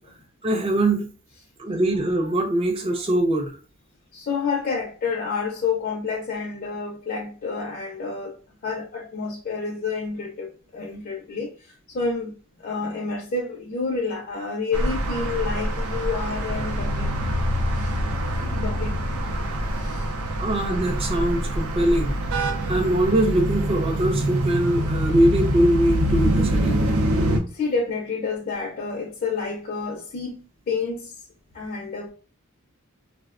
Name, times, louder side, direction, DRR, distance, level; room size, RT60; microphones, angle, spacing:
voice 1, 0.4-1.1 1.6-3.6 20.4-22.2 22.7-26.8, right 1 dB, 25° right, 0.4 m, -22 dB
voice 2, 4.1-11.5 11.9-12.3 12.6-17.1 17.8-17.9 18.5-19.0 19.8-20.1 27.5-30.4 30.7-31.1 31.5-32.1, left 4 dB, 40° left, 0.4 m, -29 dB
sound 1, 14.7-27.4, right 1 dB, 90° right, 0.5 m, -25 dB
3.3 x 2.1 x 2.4 m
head